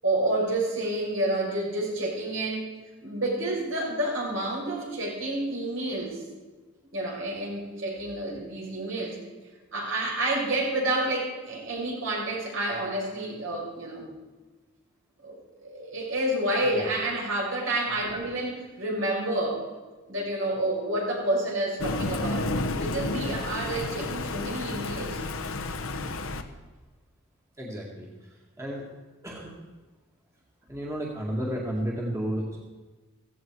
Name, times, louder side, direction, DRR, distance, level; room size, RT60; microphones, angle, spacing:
voice 1, 0.0-2.7 3.0-6.2 6.9-9.2 9.7-14.1 15.2-19.6 20.1-25.2, right 1 dB, 65° right, -3 dB, 6.4 m, -29 dB
Thunder, 21.8-26.4, left 2 dB, 80° left, 1.2 m, -31 dB
voice 2, 27.6-28.9 29.2-29.7 30.7-32.6, equal, 15° right, -3 dB, 2.1 m, -33 dB
16.0 x 16.0 x 4.7 m, 1.3 s
head